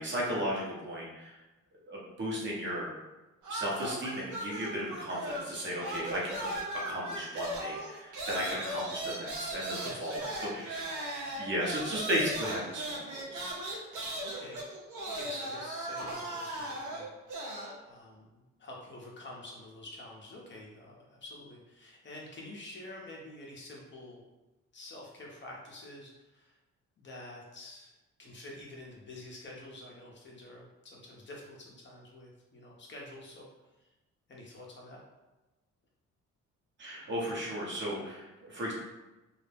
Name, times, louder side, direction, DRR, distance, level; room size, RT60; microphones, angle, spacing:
voice 1, 0.0-1.4 1.9-2.9 3.5-10.8 11.1-13.5 36.8-38.7, equal, 40° right, -4 dB, 0.9 m, -35 dB
sound 1, 3.4-5.5 5.8-17.8, right 1 dB, 80° right, 0.6 m, -38 dB
voice 2, 9.8-10.9 14.2-14.6 15.0-17.1 17.9-24.2 24.7-26.6 27.0-33.5 33.8-33.9 34.3-35.0, left 1 dB, 40° left, -2 dB, 0.6 m, -48 dB
2.3 x 2.0 x 3.3 m, 1.1 s
cardioid pair, 90°, 30 cm